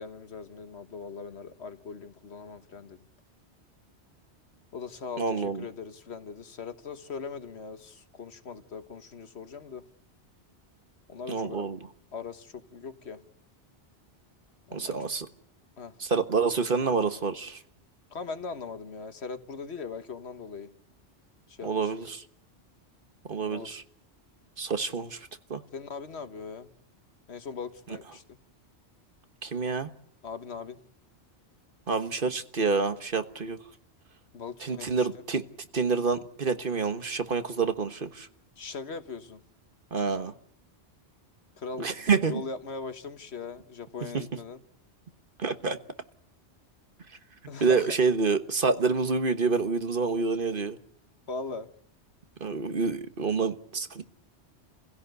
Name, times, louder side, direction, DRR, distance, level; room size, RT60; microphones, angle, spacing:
voice 1, 0.0-3.0 4.7-9.8 11.1-11.7 12.1-13.2 14.7-15.0 15.8-16.0 18.1-20.7 21.5-21.9 23.4-23.7 25.7-26.7 27.3-28.4 30.2-30.8 34.3-35.1 38.6-39.4 41.6-44.6 47.5-48.0 51.3-51.7, left 5 dB, 65° left, 1.6 m, -40 dB
voice 2, 5.2-5.6 11.3-11.8 14.7-15.3 16.0-17.6 21.6-22.2 23.3-23.8 24.6-25.2 25.5-25.6 29.4-29.9 31.9-33.6 34.6-35.4 35.7-38.3 39.9-40.3 41.8-42.4 45.4-45.8 47.6-50.8 52.4-54.0, right 4 dB, 50° right, 1.5 m, -27 dB
28.0 x 16.5 x 8.0 m
omnidirectional pair, 1.2 m